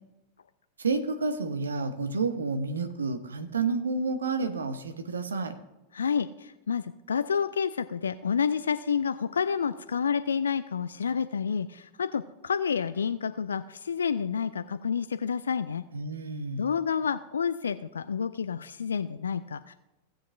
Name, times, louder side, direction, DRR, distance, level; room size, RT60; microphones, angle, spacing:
voice 1, 0.8-5.5 15.9-16.7, right 4 dB, 70° right, 8 dB, 0.9 m, -30 dB
voice 2, 5.9-15.8 16.6-19.7, left 6 dB, 70° left, 12 dB, 0.3 m, -29 dB
16.5 x 7.7 x 2.6 m, 0.97 s
figure-of-eight pair, 90°, 0 cm